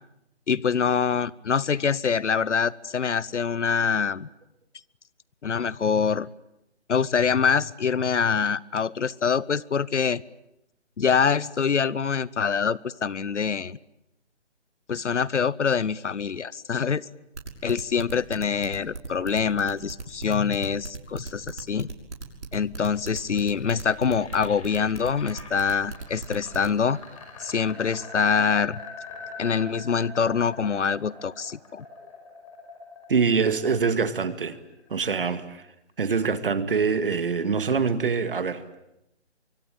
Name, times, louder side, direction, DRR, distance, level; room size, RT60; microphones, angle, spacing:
voice 1, 0.5-4.3 5.4-6.3 6.9-10.2 11.0-13.8 14.9-17.1 17.6-21.9 22.5-27.0 27.4-28.8 29.4-31.8, left 6 dB, 85° left, 0.9 m, -25 dB
sound 1, 17.3-26.7, right 4 dB, 75° right, 6.3 m, -37 dB
sound 2, 23.0-35.0, left 4 dB, 30° left, 5.7 m, -43 dB
voice 2, 33.1-34.6 34.9-35.7 36.0-38.8, right 5 dB, 50° right, 2.0 m, -24 dB
25.0 x 24.0 x 9.2 m
hypercardioid pair, 165°, 35 cm